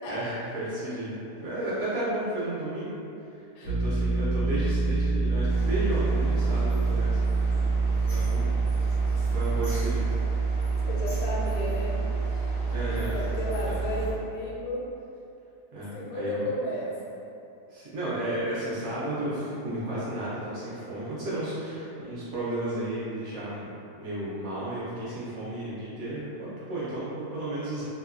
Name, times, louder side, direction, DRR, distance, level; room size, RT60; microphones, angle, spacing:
voice 1, 0.0-3.0 3.6-8.7 9.0-10.1 12.7-13.2 13.6-13.7 15.7-16.4 17.7-27.8, right 1 dB, 65° right, -9 dB, 0.9 m, -33 dB
sound 1, 3.6-14.1, right 4 dB, 60° left, 0.8 m, -26 dB
sound 2, 5.5-14.1, left 1 dB, 5° left, 0.3 m, -42 dB
voice 2, 10.8-12.0 13.1-14.9 15.9-17.0, left 1 dB, 75° left, -5 dB, 1.1 m, -33 dB
2.9 x 2.2 x 2.3 m, 2.7 s
omnidirectional pair, 1.8 m